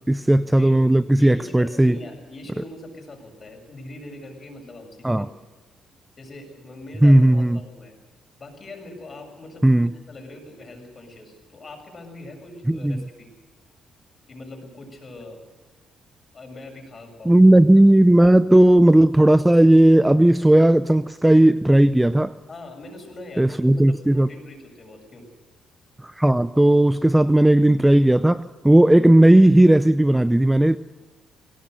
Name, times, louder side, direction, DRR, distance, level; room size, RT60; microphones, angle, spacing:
voice 1, 0.1-2.0 5.0-5.3 7.0-7.6 9.6-9.9 12.7-13.0 17.3-22.3 23.4-24.3 26.0-30.8, right 1 dB, 10° right, 14 dB, 0.5 m, -15 dB
voice 2, 1.2-5.2 6.2-8.0 8.4-9.8 10.1-13.3 14.3-15.4 16.3-17.4 22.5-25.3, left 2 dB, 35° left, 3 dB, 7.4 m, -42 dB
22.5 x 18.0 x 6.7 m, 1.3 s
cardioid pair, 90°, 0 cm